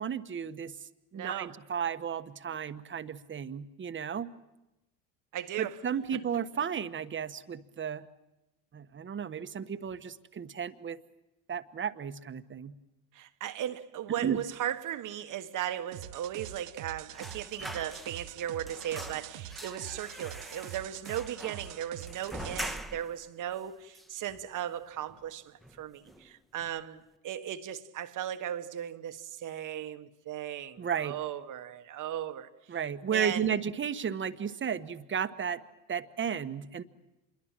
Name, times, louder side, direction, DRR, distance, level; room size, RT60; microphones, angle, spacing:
voice 1, 0.0-4.3 5.6-8.1 8.7-11.0 11.5-12.8 14.2-14.4 30.8-31.2 32.7-35.6 35.9-36.8, right 7 dB, 30° right, 1.2 m, -34 dB
voice 2, 1.1-1.5 5.3-5.8 13.1-32.5 33.1-33.5, right 11 dB, 45° right, 1.3 m, -37 dB
sound 1, 15.9-22.8, right 12 dB, 70° right, 1.1 m, -45 dB
sound 2, 17.1-18.4 18.7-23.2 23.5-23.6 23.9-24.8 25.1-25.3 25.6-26.3 26.6-26.8, equal, ahead, 1.3 m, -43 dB
27.0 x 22.0 x 7.4 m
supercardioid pair, 90°, 41 cm